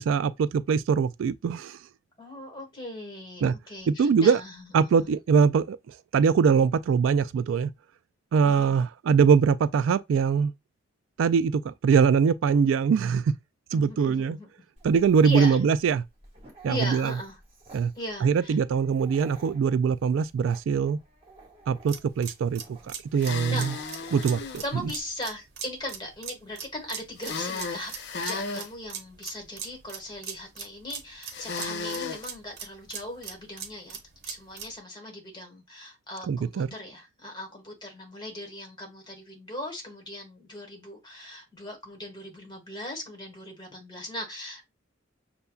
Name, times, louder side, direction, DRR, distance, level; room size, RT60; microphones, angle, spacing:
voice 1, 0.0-1.8 3.4-3.5 3.9-4.4 4.7-5.8 6.1-7.7 8.3-10.5 11.2-13.3 13.7-14.4 14.8-16.0 16.6-17.1 17.7-17.9 18.2-21.0 21.7-22.6 23.1-23.8 24.1-24.9 36.3-36.7, right 6 dB, 75° right, 0.3 m, -22 dB
voice 2, 2.2-5.1 8.4-8.8 13.7-14.5 15.2-15.7 16.7-17.4 17.9-18.6 23.5-23.7 24.6-27.9 28.2-34.0 34.2-44.7, left 1 dB, 25° left, 1.4 m, -38 dB
Dog, 14.8-25.0, right 2 dB, 30° right, 1.5 m, -53 dB
sound 1, 21.9-34.8, right 7 dB, 55° right, 0.9 m, -41 dB
sound 2, 23.2-24.7 27.2-28.7 31.3-32.2, left 4 dB, 60° left, 0.6 m, -34 dB
6.7 x 2.3 x 2.3 m
head